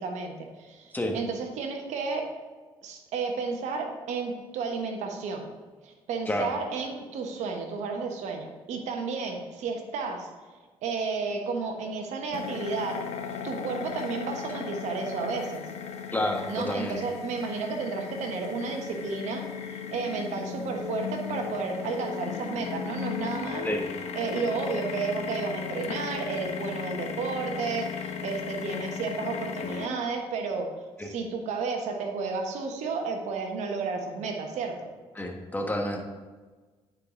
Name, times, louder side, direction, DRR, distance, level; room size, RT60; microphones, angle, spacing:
voice 1, 0.0-2.3 2.8-5.5 5.8-10.3 10.8-13.0 13.4-15.6 16.5-23.7 24.1-30.7 31.0-34.9, right 4 dB, 75° right, 3 dB, 1.2 m, -32 dB
sound 1, 12.3-29.9, left 7 dB, 65° left, 0.8 m, -36 dB
voice 2, 16.1-17.0 23.6-23.9 31.0-31.1 35.1-36.0, left 1 dB, 15° left, 2 dB, 1.5 m, -29 dB
9.6 x 4.8 x 3.8 m, 1.3 s
supercardioid pair, 65°, 12 cm